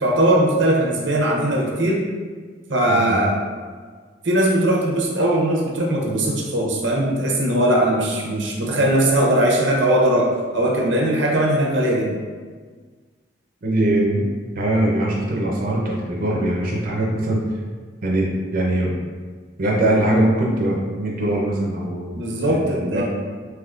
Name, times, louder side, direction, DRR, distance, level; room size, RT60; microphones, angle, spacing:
voice 1, 0.0-2.0 2.7-3.3 4.2-10.3 10.5-12.2 22.2-23.0, right 1 dB, 90° right, -2 dB, 0.7 m, -19 dB
voice 2, 2.9-3.2 13.6-14.2 14.5-17.4 18.0-19.0 19.6-22.2 22.5-23.0, right 1 dB, 55° right, -3 dB, 0.5 m, -21 dB
3.5 x 3.0 x 2.4 m, 1.5 s
head